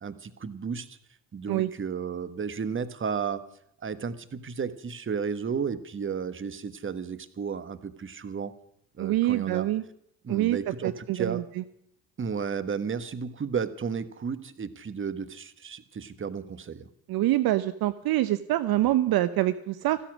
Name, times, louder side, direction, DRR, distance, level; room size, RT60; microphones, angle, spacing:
voice 1, 0.0-1.0 1.3-3.4 3.8-8.5 9.0-9.7 10.2-11.4 12.2-16.9, right 6 dB, 25° right, 13 dB, 1.4 m, -33 dB
voice 2, 9.0-9.8 10.3-10.6 10.8-11.4 17.1-20.0, right 15 dB, 55° right, 14 dB, 0.9 m, -25 dB
15.0 x 13.0 x 6.3 m, 0.70 s
hypercardioid pair, 65°, 44 cm